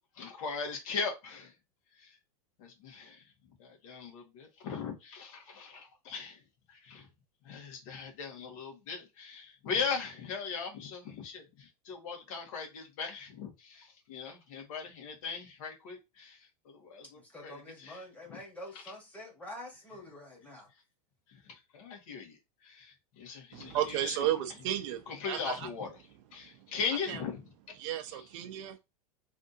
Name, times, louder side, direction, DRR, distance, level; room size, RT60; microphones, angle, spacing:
voice 1, 0.1-1.5 2.0-2.2 2.6-3.3 3.6-6.4 6.7-7.1 7.4-18.0 18.3-18.4 21.3-24.2 25.1-26.0 26.3-27.4, left 5 dB, 55° left, 1.5 m, -39 dB
voice 2, 17.1-20.7, left 1 dB, 5° left, 1.4 m, -47 dB
voice 3, 23.5-25.7 26.5-26.7 27.1-27.2 27.8-28.8, right 12 dB, 50° right, 0.7 m, -34 dB
3.4 x 2.6 x 2.7 m
supercardioid pair, 140°, 20 cm